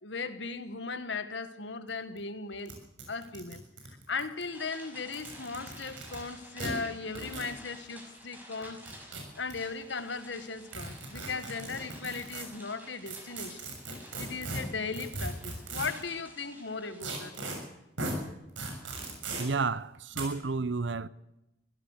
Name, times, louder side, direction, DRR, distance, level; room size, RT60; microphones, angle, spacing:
voice 1, 0.0-2.7 3.1-3.6 4.1-8.9 9.4-13.6 14.2-17.4, left 4 dB, 70° left, 1.6 m, -37 dB
sound 1, 1.9-2.0 2.2-2.3 2.7-2.8 3.0-4.4 5.0-6.2 6.6-6.7 7.1-7.5 8.6-9.5 10.7-12.4 13.1-16.0 17.0-17.6 18.0-18.1 18.6-19.4 20.1-20.2, right 2 dB, 90° right, 6.8 m, -38 dB
sound 2, 4.5-17.0, equal, 10° right, 6.0 m, -52 dB
voice 2, 19.4-21.1, right 4 dB, 70° right, 0.8 m, -31 dB
23.5 x 17.0 x 6.6 m
head